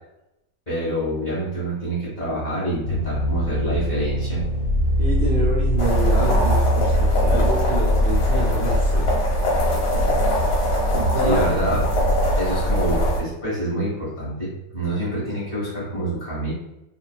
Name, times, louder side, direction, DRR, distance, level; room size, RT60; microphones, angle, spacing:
voice 1, 0.7-4.4 11.2-11.9 12.4-16.5, right 1 dB, 25° left, -8 dB, 1.2 m, -26 dB
sound 1, 2.8-10.0, left 1 dB, 70° left, 1.3 m, -23 dB
voice 2, 5.0-9.0 10.9-11.4 11.7-11.8, right 2 dB, 70° right, -4 dB, 1.1 m, -27 dB
sound 2, 5.8-13.2, equal, 55° left, 1.2 m, -21 dB
3.1 x 2.5 x 2.2 m, 0.88 s
omnidirectional pair, 2.2 m